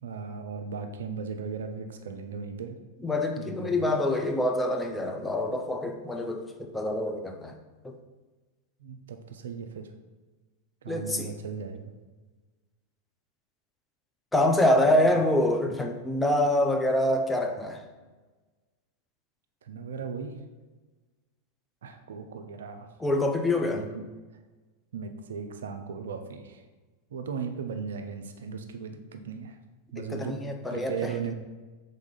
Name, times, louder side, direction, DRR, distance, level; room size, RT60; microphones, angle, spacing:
voice 1, 0.0-2.8 3.4-3.9 8.8-9.9 10.8-11.9 15.0-15.1 19.6-20.4 21.8-22.9 23.6-24.1 24.9-26.6 27.1-29.6 29.9-30.4 30.7-31.3, right 6 dB, 65° right, 6 dB, 0.4 m, -37 dB
voice 2, 3.0-7.5 7.8-8.0 10.9-11.3 14.3-17.8 23.0-23.8 30.0-31.1, left 1 dB, 10° left, 3 dB, 0.4 m, -26 dB
3.7 x 3.5 x 3.9 m, 1.3 s
figure-of-eight pair, 90°, 0 cm